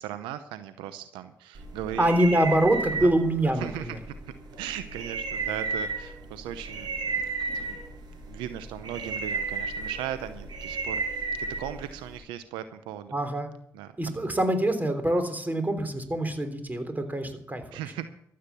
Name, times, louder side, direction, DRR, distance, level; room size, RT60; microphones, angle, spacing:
voice 1, 0.0-2.1 3.0-3.1 3.6-4.0 4.6-7.8 8.2-11.0 11.4-13.2 13.7-13.9 17.7-18.0, right 11 dB, 90° right, 11 dB, 0.7 m, -37 dB
sound 1, 1.6-12.2, right 4 dB, 60° right, 6.2 m, -34 dB
voice 2, 2.0-4.0 13.1-13.5 14.0-17.6, right 1 dB, 20° right, 8 dB, 3.3 m, -25 dB
13.5 x 8.6 x 6.9 m, 0.67 s
supercardioid pair, 50°, 8 cm